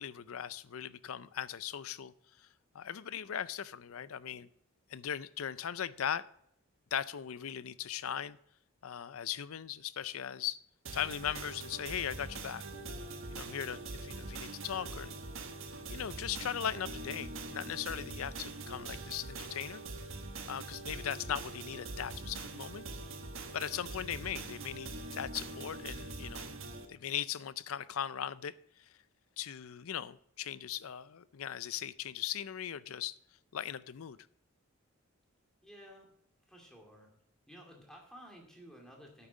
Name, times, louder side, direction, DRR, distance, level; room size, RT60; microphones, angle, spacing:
voice 1, 0.0-2.1 2.4-2.5 2.7-4.5 4.9-6.2 6.9-8.4 8.8-10.6 10.9-12.6 13.3-15.1 15.9-19.8 20.5-22.9 23.5-26.5 26.9-28.9 29.4-33.2 33.5-34.2, left 9 dB, 75° left, 17 dB, 0.5 m, -39 dB
sound 1, 10.8-26.8, right 3 dB, 65° right, 1.4 m, -43 dB
voice 2, 35.6-36.1 36.5-37.1 37.5-39.3, equal, 5° left, 0 dB, 2.5 m, -53 dB
11.0 x 8.8 x 5.2 m, 0.73 s
head